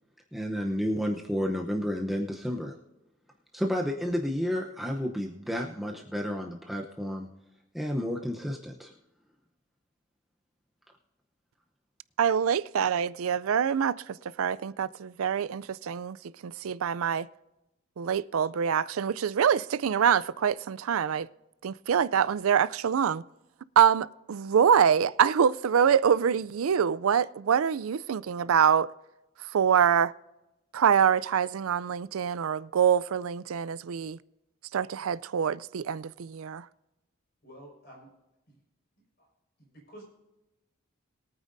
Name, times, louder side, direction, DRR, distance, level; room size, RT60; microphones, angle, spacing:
voice 1, 0.3-2.8 3.5-7.3 7.7-8.9, equal, ahead, 0.7 m, -31 dB
voice 2, 12.2-16.2 16.4-17.3 18.0-21.3 21.6-23.2 23.8-28.9 29.5-30.1 30.7-34.2 34.7-36.7, right 8 dB, 85° right, 0.4 m, -25 dB
voice 3, 37.4-38.1 38.5-38.6 39.2-39.3 39.6-40.0, right 1 dB, 50° left, 5.1 m, -50 dB
22.5 x 9.1 x 2.6 m
head